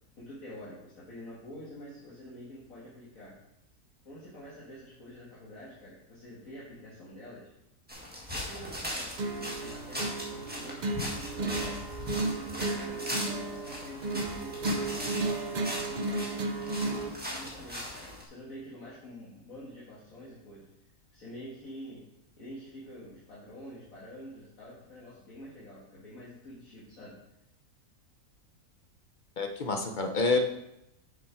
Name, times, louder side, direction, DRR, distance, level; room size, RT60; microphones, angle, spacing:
voice 1, 0.2-3.3 4.1-7.5 8.3-11.8 12.2-15.1 15.8-20.7 21.1-22.0 22.4-27.2, equal, 65° left, -8 dB, 2.2 m, -47 dB
sound 1, 7.9-18.2, equal, 5° right, 1.5 m, -39 dB
sound 2, 9.2-17.2, right 3 dB, 45° right, 0.6 m, -34 dB
voice 2, 29.4-30.4, left 3 dB, 40° left, 4 dB, 0.7 m, -27 dB
7.0 x 6.6 x 4.8 m, 0.85 s
omnidirectional pair, 1.6 m